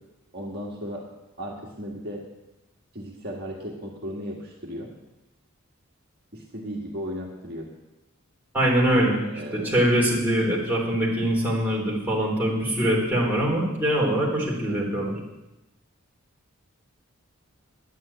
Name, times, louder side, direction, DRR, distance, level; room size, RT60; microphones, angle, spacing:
voice 1, 0.3-1.1 1.4-2.3 2.9-4.9 6.3-7.7 9.2-9.7 14.7-15.0, equal, 45° right, -2 dB, 1.7 m, -36 dB
voice 2, 8.5-15.1, right 1 dB, 10° right, -4 dB, 3.5 m, -23 dB
10.5 x 9.2 x 8.7 m, 1.0 s
head